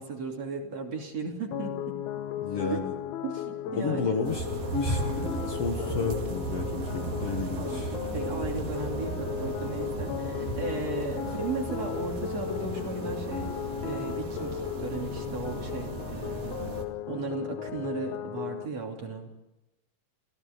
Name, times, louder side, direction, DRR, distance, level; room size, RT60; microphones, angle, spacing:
voice 1, 0.0-2.0 3.2-4.1 7.6-13.5 13.8-16.6 17.1-19.3, right 3 dB, 45° right, 1 dB, 3.9 m, -36 dB
sound 1, 1.5-18.6, left 11 dB, 80° left, 1.5 m, -36 dB
voice 2, 2.4-2.9 3.7-7.9, left 4 dB, 50° left, 3 dB, 2.3 m, -32 dB
sound 2, 4.2-16.8, right 3 dB, 75° right, 4.2 m, -36 dB
sound 3, 4.5-9.6, right 1 dB, 20° left, 2.1 m, -41 dB
29.5 x 16.5 x 5.3 m, 0.99 s
omnidirectional pair, 4.1 m